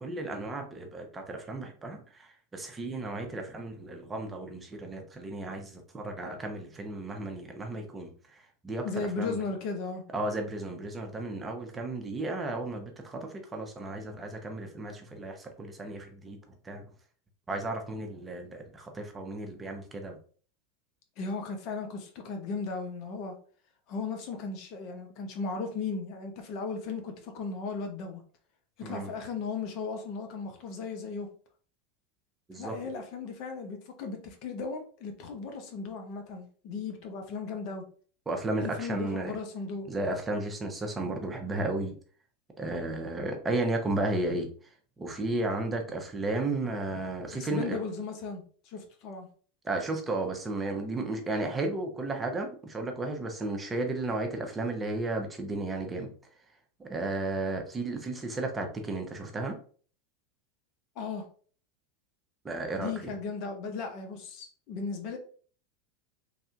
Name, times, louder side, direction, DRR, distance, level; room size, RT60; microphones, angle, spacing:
voice 1, 0.0-8.8 9.2-9.4 10.1-16.4 16.6-16.8 17.5-20.2 28.8-29.1 32.5-32.7 38.3-39.4 39.9-42.0 42.6-44.5 45.0-47.8 49.6-56.1 56.8-59.6 62.4-63.1, right 2 dB, 20° right, 3 dB, 0.8 m, -34 dB
voice 2, 8.8-10.0 21.2-23.3 23.9-28.2 28.8-31.3 32.5-37.8 38.6-39.9 47.3-49.3 61.0-61.3 62.8-65.2, left 4 dB, 55° left, 5 dB, 0.8 m, -36 dB
3.4 x 2.6 x 2.5 m, 0.43 s
hypercardioid pair, 90°, 0 cm